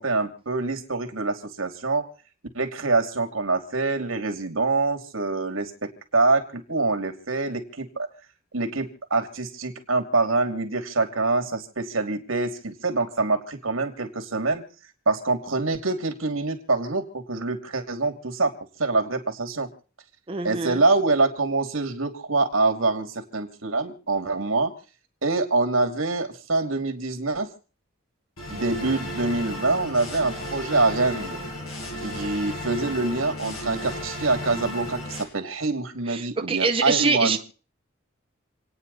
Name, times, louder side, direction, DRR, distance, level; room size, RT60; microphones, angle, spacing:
voice 1, 0.0-2.1 2.5-8.1 8.5-14.6 15.1-18.5 18.8-19.7 20.4-24.7 25.2-27.5 28.5-31.4 32.0-37.4, right 3 dB, 70° right, 5 dB, 2.8 m, -25 dB
voice 2, 20.3-20.8 36.1-37.4, right 4 dB, 25° right, 5 dB, 0.7 m, -24 dB
sound 1, 28.4-35.2, equal, 90° left, 6.4 m, -34 dB
28.0 x 9.7 x 4.1 m, 0.39 s
head